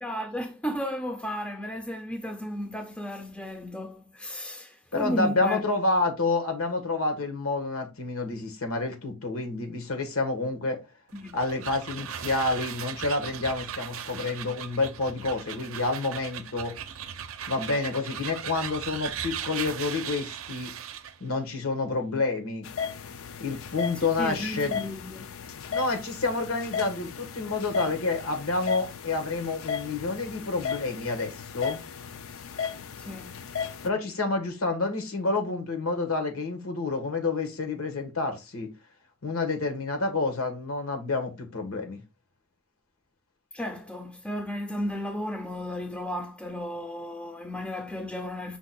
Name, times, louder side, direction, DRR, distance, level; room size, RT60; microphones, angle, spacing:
voice 1, 0.0-5.6 11.1-11.4 24.0-25.4 33.0-33.4 43.5-48.6, equal, 5° left, 0.4 m, -34 dB
voice 2, 4.9-10.8 11.3-16.7 17.5-20.7 21.2-22.7 23.4-24.9 25.7-31.8 33.8-38.7 39.2-42.0, left 3 dB, 85° left, 1.3 m, -29 dB
sound 1, 11.1-21.2, right 9 dB, 65° right, 0.5 m, -38 dB
sound 2, 22.6-33.9, left 6 dB, 70° left, 0.5 m, -36 dB
5.7 x 2.3 x 4.1 m
head